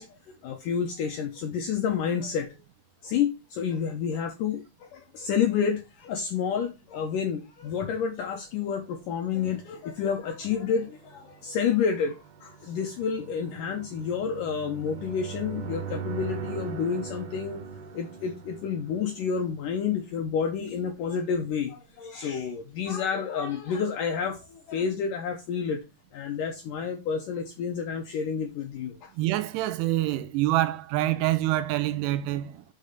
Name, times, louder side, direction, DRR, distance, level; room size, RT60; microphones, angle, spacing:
voice 1, 0.0-2.6 3.0-17.6 17.9-25.8 26.1-29.1, left 7 dB, 80° left, 1.9 m, -29 dB
sound 1, 9.2-20.0, right 6 dB, 70° right, 2.1 m, -41 dB
voice 2, 29.2-32.6, right 15 dB, 85° right, 2.9 m, -26 dB
6.7 x 5.3 x 6.6 m
omnidirectional pair, 4.9 m